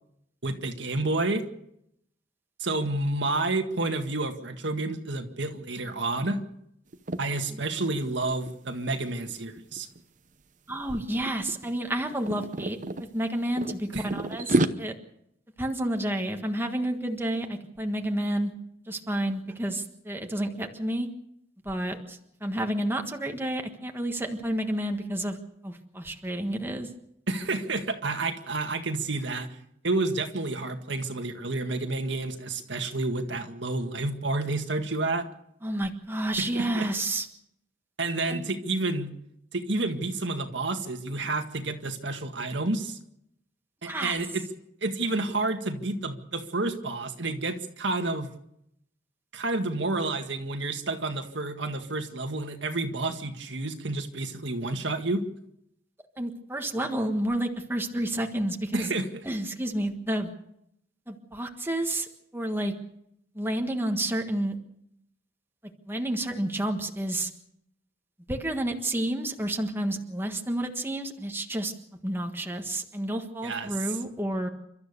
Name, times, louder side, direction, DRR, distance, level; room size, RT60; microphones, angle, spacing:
voice 1, 0.4-1.4 2.6-6.4 7.2-9.9 13.9-14.0 27.3-29.6 29.8-35.3 36.4-36.9 38.0-39.1 39.5-43.0 43.8-44.4 44.8-48.3 49.3-55.2 58.7-59.2 73.4-73.7, right 2 dB, 70° right, 5 dB, 1.9 m, -30 dB
sound 1, 6.9-7.2 7.6-7.8 8.1-10.0 10.7-11.0 11.3-13.1 13.6-14.7, right 2 dB, 45° right, 0.9 m, -29 dB
voice 2, 10.7-12.8 13.1-14.9 15.6-18.5 18.9-21.1 21.6-25.4 25.6-26.9 35.6-37.3 38.3-38.5 43.8-44.2 56.2-58.9 59.2-60.3 61.1-62.7 63.3-64.5 65.9-67.3 68.3-71.7 72.0-74.5, right 1 dB, 10° right, 3 dB, 1.6 m, -30 dB
29.0 x 13.0 x 6.8 m, 0.77 s
head